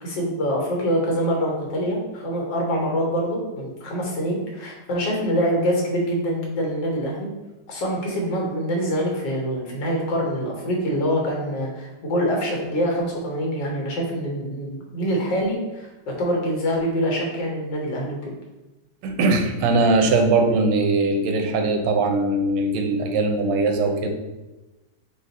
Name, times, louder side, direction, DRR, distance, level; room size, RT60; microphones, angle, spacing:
voice 1, 0.0-7.3 7.7-18.3, equal, 85° left, -1 dB, 1.6 m, -25 dB
voice 2, 19.0-24.1, right 3 dB, 85° right, 4 dB, 1.3 m, -20 dB
4.3 x 2.3 x 3.9 m, 1.1 s
omnidirectional pair, 1.9 m